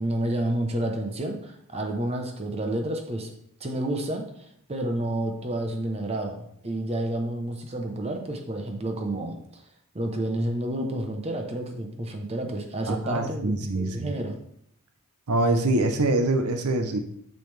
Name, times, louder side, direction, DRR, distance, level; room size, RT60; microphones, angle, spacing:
voice 1, 0.0-3.3 3.6-9.6 9.9-14.4, right 1 dB, 30° right, 4 dB, 0.8 m, -30 dB
voice 2, 12.9-14.1 15.3-17.0, right 2 dB, 85° right, 6 dB, 0.7 m, -24 dB
6.5 x 6.4 x 3.3 m, 0.69 s
head